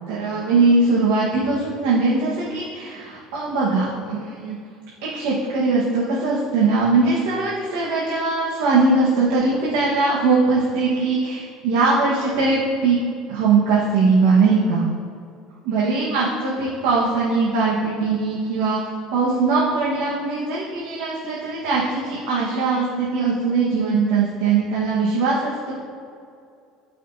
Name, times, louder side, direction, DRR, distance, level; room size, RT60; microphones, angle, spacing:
voice 1, 0.1-4.6 5.0-13.0 13.3-14.9 15.6-18.8 19.1-25.7, right 3 dB, 90° right, -5 dB, 1.3 m, -20 dB
12.0 x 5.1 x 2.7 m, 2.4 s
cardioid pair, 150°, 0 cm